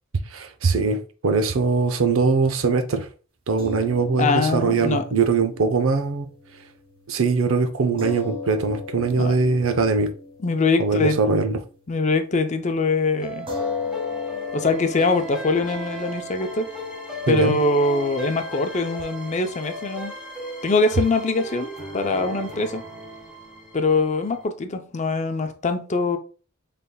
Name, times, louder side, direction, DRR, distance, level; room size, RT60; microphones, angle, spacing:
voice 1, 0.3-3.1 3.5-6.3 7.1-10.1 10.8-11.6 17.3-17.6, right 4 dB, 75° right, 0.6 m, -21 dB
sound 1, 3.6-12.1 12.4-12.6 13.5-20.0, left 4 dB, 25° right, 1.5 m, -37 dB
voice 2, 4.2-5.0 9.1-9.3 10.4-11.2 11.9-13.5 14.5-16.7 17.3-20.1 20.6-22.8 23.7-26.2, left 3 dB, 35° left, 0.5 m, -23 dB
sound 2, 13.2-24.4, equal, 5° right, 1.3 m, -36 dB
5.4 x 3.3 x 2.2 m
head